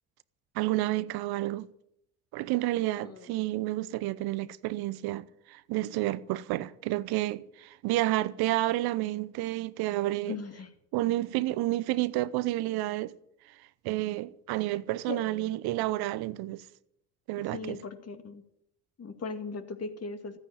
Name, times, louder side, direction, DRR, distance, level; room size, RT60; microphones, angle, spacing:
voice 1, 0.5-1.7 2.3-10.4 10.9-13.1 13.5-13.6 13.8-16.7 17.3-17.8, right 17 dB, 70° right, 0.8 m, -30 dB
voice 2, 3.0-3.6 10.3-10.7 15.1-15.2 17.4-18.4 19.0-20.4, left 4 dB, 40° left, 2.2 m, -39 dB
13.5 x 9.4 x 9.1 m
hypercardioid pair, 65°, 39 cm